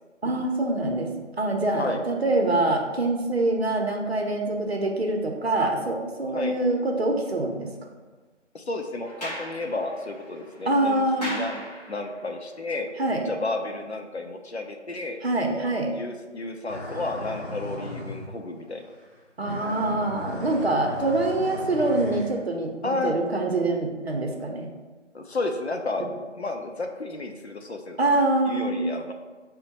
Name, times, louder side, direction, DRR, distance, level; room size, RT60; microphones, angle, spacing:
voice 1, 0.2-1.1 1.4-7.7 10.7-11.4 13.0-13.2 15.2-15.9 19.4-24.7 28.0-28.8, right 2 dB, 55° right, 2 dB, 0.7 m, -25 dB
voice 2, 8.5-11.6 11.9-12.9 13.2-18.8 22.8-23.1 25.1-26.0 26.4-28.0 28.5-29.1, left 2 dB, 60° left, 4 dB, 0.5 m, -32 dB
Sliding door, 9.0-12.3, equal, 35° left, 0.8 m, -38 dB
sound 1, 16.7-18.3 18.8-19.1 19.4-22.4, equal, 20° right, 0.8 m, -36 dB
5.2 x 2.2 x 4.0 m, 1.3 s
figure-of-eight pair, 165°, 37 cm